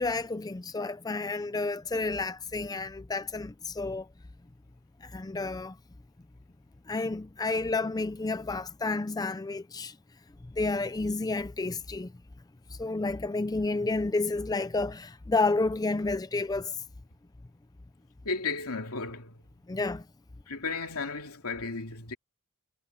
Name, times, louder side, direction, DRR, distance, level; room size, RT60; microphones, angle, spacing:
voice 1, 0.0-4.1 5.0-5.8 6.9-10.0 10.4-12.1 12.7-16.8 19.7-20.1, left 3 dB, 15° left, 0.5 m, -30 dB
voice 2, 18.2-19.4 20.5-22.1, left 4 dB, 80° left, 2.7 m, -34 dB
head